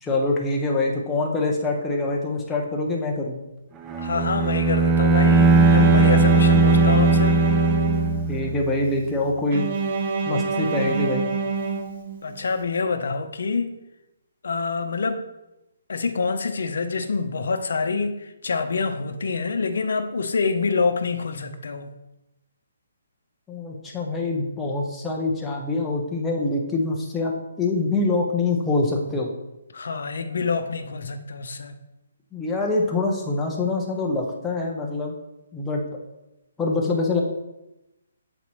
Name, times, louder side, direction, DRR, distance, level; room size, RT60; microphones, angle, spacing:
voice 1, 0.0-3.4 8.3-9.6 10.2-11.3 23.5-29.3 32.3-35.1 35.5-35.8 36.6-37.2, left 2 dB, 10° left, -2 dB, 0.9 m, -25 dB
Bowed string instrument, 3.9-8.7, right 3 dB, 15° right, 0.4 m, -18 dB
voice 2, 4.0-7.4 10.8-11.1 12.2-13.7 14.4-15.3 15.9-21.9 29.7-31.8, left 4 dB, 70° left, 8 dB, 0.7 m, -26 dB
Bowed string instrument 2, 5.3-8.5 9.5-12.4, right 4 dB, 45° right, 1.0 m, -27 dB
8.0 x 4.2 x 3.1 m, 0.94 s
hypercardioid pair, 155°, 0 cm